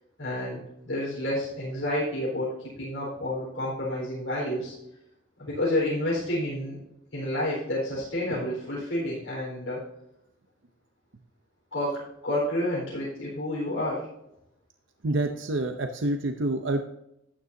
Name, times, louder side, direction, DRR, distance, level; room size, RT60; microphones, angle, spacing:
voice 1, 0.2-4.7 5.4-6.8 7.1-9.8 11.7-14.1, left 1 dB, 75° left, -7 dB, 4.2 m, -30 dB
voice 2, 15.0-16.8, right 2 dB, 70° right, 6 dB, 0.7 m, -27 dB
12.0 x 9.7 x 2.7 m, 0.83 s
head